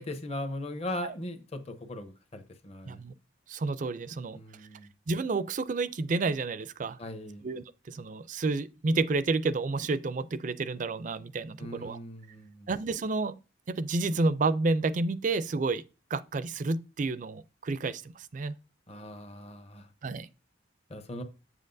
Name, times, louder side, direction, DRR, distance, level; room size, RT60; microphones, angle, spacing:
voice 1, 0.0-3.0 4.3-4.9 7.0-7.4 11.6-12.7 18.9-19.9 20.9-21.2, left 1 dB, 30° left, 0.8 m, -39 dB
voice 2, 3.5-4.4 5.1-7.0 7.4-12.0 12.7-13.4 13.7-15.8 16.1-18.5 20.0-20.3, right 3 dB, 40° right, 0.4 m, -30 dB
8.1 x 7.5 x 2.6 m
head